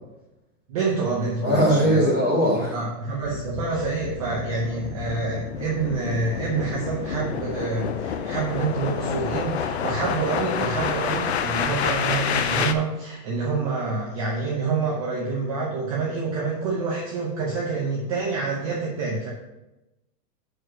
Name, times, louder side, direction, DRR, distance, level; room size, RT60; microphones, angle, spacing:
voice 1, 0.7-2.2 2.7-19.3, right 4 dB, 20° right, -3 dB, 0.7 m, -27 dB
voice 2, 1.4-2.7, equal, 20° left, -6 dB, 2.3 m, -20 dB
sound 1, 3.2-12.7, left 7 dB, 45° left, 0.4 m, -29 dB
6.1 x 4.8 x 6.4 m, 0.98 s
supercardioid pair, 170°, 49 cm